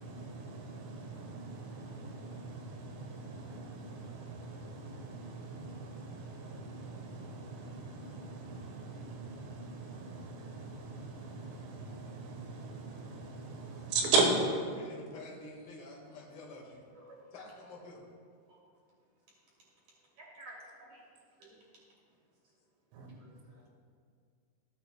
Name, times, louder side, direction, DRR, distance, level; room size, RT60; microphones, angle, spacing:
voice 1, 0.0-14.3 22.9-23.1, right 4 dB, 80° right, 3.8 m, -38 dB
voice 2, 14.7-16.9 17.3-18.0, left 2 dB, 85° left, 1.2 m, -48 dB
voice 3, 20.2-21.1 21.4-21.6 23.2-23.7, right 1 dB, 40° right, 3.5 m, -53 dB
15.0 x 9.4 x 2.3 m
omnidirectional pair, 5.8 m